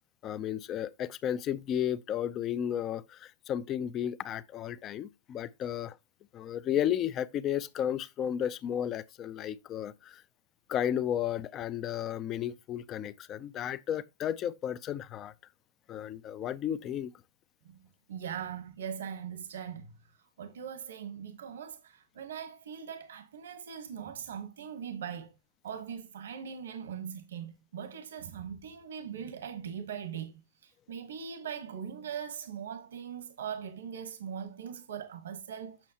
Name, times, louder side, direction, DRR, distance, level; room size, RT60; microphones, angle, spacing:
voice 1, 0.2-6.0 6.3-10.2 10.7-15.3 15.9-17.1, left 10 dB, 30° left, 0.4 m, -33 dB
voice 2, 18.1-19.9 20.4-25.3 25.6-35.8, right 8 dB, 85° right, 1.2 m, -40 dB
7.3 x 6.3 x 2.8 m
hypercardioid pair, 145°, 0 cm